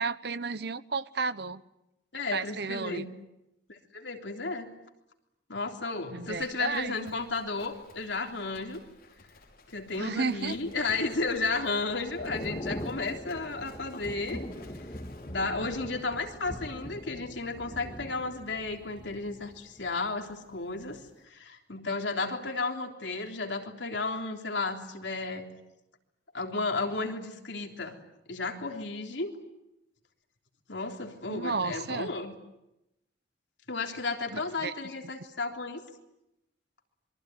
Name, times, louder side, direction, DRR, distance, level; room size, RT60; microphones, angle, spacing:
voice 1, 0.0-1.6 2.3-3.1 6.1-7.1 10.0-10.6 31.3-32.1 34.3-34.7, right 4 dB, 60° right, 15 dB, 1.0 m, -33 dB
voice 2, 2.1-3.1 3.7-4.7 5.5-8.8 9.7-14.4 15.3-25.5 26.3-27.9 28.3-29.3 30.7-32.3 33.7-35.8, left 3 dB, 70° left, 4 dB, 3.5 m, -33 dB
Livestock farm animals working animals, 6.3-17.1, left 2 dB, 55° left, 5.4 m, -55 dB
Thunder / Rain, 10.4-20.4 20.7-21.0, equal, 25° left, 1.9 m, -42 dB
27.0 x 23.5 x 9.4 m, 0.89 s
head